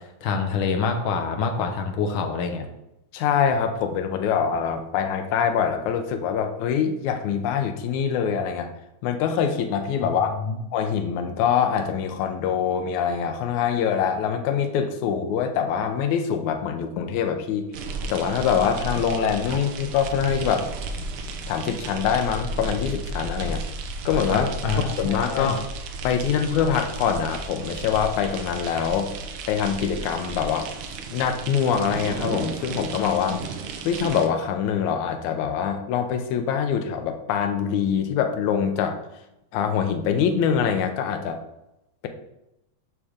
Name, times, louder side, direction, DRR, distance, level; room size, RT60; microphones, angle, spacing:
voice 1, 0.2-2.7 10.3-10.5 19.5-19.6 24.3-25.6, left 5 dB, 60° left, 4 dB, 1.4 m, -26 dB
voice 2, 3.1-8.7 9.0-10.4 10.7-17.7 18.1-20.7 21.5-23.6 24.1-24.5 25.0-25.6 26.0-29.1 29.5-30.7 31.1-33.4 33.9-39.0 39.5-41.4, left 7 dB, 80° left, 5 dB, 2.2 m, -24 dB
sound 1, 17.7-34.3, right 3 dB, 75° right, 1.2 m, -33 dB
9.8 x 3.6 x 6.3 m, 0.89 s
omnidirectional pair, 3.5 m